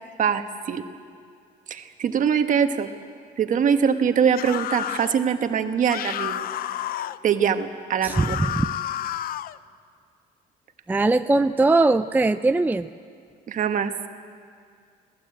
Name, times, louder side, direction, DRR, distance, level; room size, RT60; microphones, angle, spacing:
voice 1, 0.2-0.8 1.7-2.9 3.4-6.5 7.2-8.3 13.5-13.9, right 7 dB, 50° right, 7 dB, 1.5 m, -23 dB
sound 1, 4.3-5.2 5.9-7.2 8.1-9.6, left 12 dB, 60° left, 0.6 m, -30 dB
voice 2, 8.0-8.8 10.9-12.9, right 2 dB, 10° right, 9 dB, 0.5 m, -21 dB
25.0 x 17.0 x 8.6 m, 2.3 s
cardioid pair, 110°, 17 cm